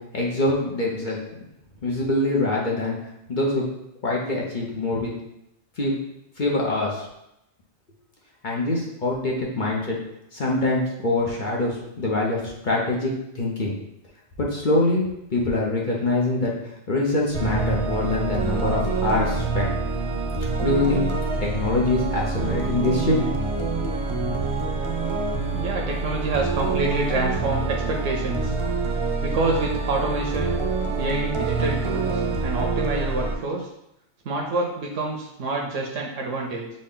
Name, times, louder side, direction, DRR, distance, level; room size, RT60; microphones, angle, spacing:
voice 1, 0.1-1.2 1.8-3.0 3.3-3.6 4.0-5.1 5.8-5.9 6.4-7.1 8.4-10.0 10.3-13.7 14.4-15.0 15.3-16.5 16.9-19.7 20.6-21.0 21.4-23.2, left 2 dB, 45° left, -3 dB, 0.9 m, -24 dB
sound 1, 17.3-33.3, right 3 dB, 50° right, 0.3 m, -26 dB
voice 2, 25.5-28.5 29.2-30.6 31.0-33.7 34.2-36.7, right 2 dB, 85° right, 0 dB, 1.0 m, -27 dB
6.3 x 2.3 x 3.7 m, 0.82 s
omnidirectional pair, 1.2 m